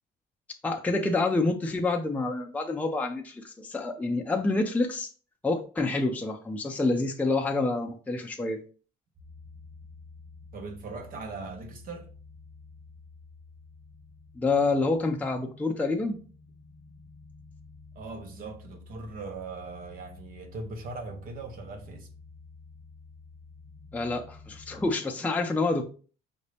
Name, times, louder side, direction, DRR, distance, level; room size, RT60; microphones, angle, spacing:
voice 1, 0.6-5.1 5.4-8.6 14.4-16.2 23.9-25.8, left 3 dB, 10° left, 0.5 m, -27 dB
sound 1, 9.2-24.9, left 4 dB, 20° right, 0.8 m, -50 dB
voice 2, 10.5-12.1 17.9-22.1, right 3 dB, 55° right, 1.0 m, -40 dB
5.1 x 2.7 x 3.3 m
cardioid pair, 110°, 17 cm